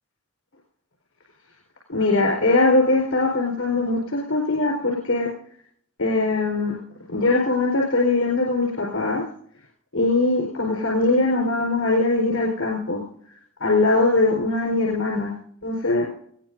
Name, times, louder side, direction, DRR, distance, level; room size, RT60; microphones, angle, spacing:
voice 1, 1.9-5.3 6.0-6.7 7.1-9.2 9.9-13.0 13.6-15.3 15.6-16.1, left 2 dB, 85° left, -1 dB, 4.5 m, -21 dB
20.5 x 17.5 x 2.7 m, 0.65 s
head